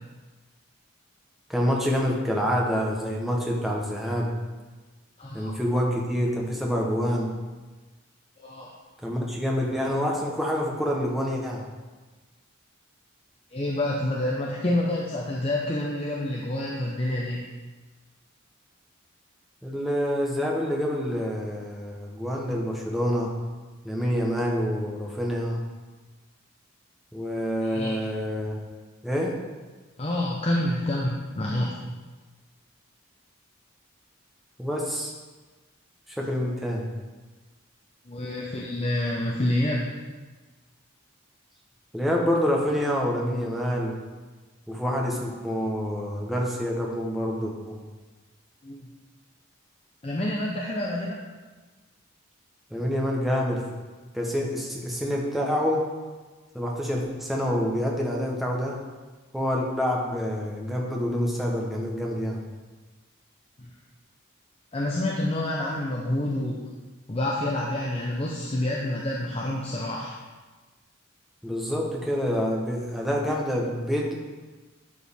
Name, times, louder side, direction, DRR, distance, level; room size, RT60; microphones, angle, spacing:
voice 1, 1.5-4.3 5.3-7.3 9.0-11.6 19.6-23.3 23.8-25.6 27.1-28.6 29.0-29.4 34.6-35.1 36.1-36.9 41.9-44.0 44.7-47.8 52.7-53.6 54.1-55.9 56.5-58.8 59.3-62.4 71.4-74.1, equal, ahead, -2 dB, 1.0 m, -27 dB
voice 2, 5.2-5.5 8.4-8.7 13.5-17.4 27.6-28.0 30.0-31.7 38.1-40.0 48.6-48.9 50.0-51.3 63.6-63.7 64.7-66.6 67.1-70.1, left 1 dB, 30° left, -3 dB, 0.7 m, -28 dB
11.0 x 4.7 x 3.5 m, 1.3 s
head